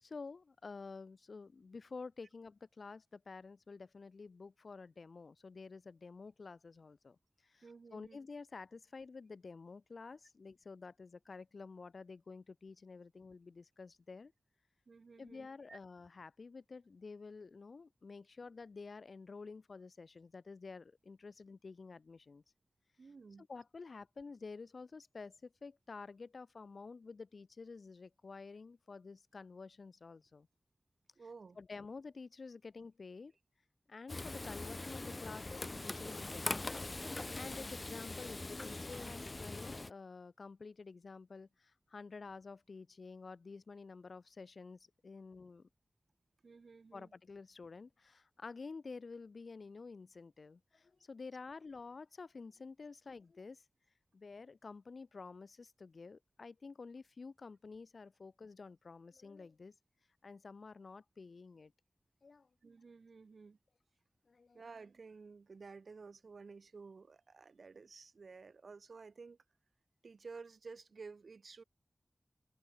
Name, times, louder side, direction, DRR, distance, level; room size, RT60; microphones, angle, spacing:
voice 1, 0.0-7.2 7.4-14.3 15.2-22.4 23.5-30.5 31.6-33.3 33.9-36.8 37.3-45.7 46.9-53.6 54.1-59.7 60.2-61.7 62.2-62.5 64.3-64.6, left 4 dB, 75° left, 0.9 m, -50 dB
voice 2, 7.6-8.2 14.9-15.8 23.0-23.5 31.2-31.6 46.4-47.1 62.6-63.6 64.5-69.4 70.0-71.6, right 4 dB, 85° right, 4.5 m, -53 dB
Frying (food), 34.1-39.9, left 2 dB, 40° left, 0.8 m, -42 dB
wide cardioid pair, 85°, 0 cm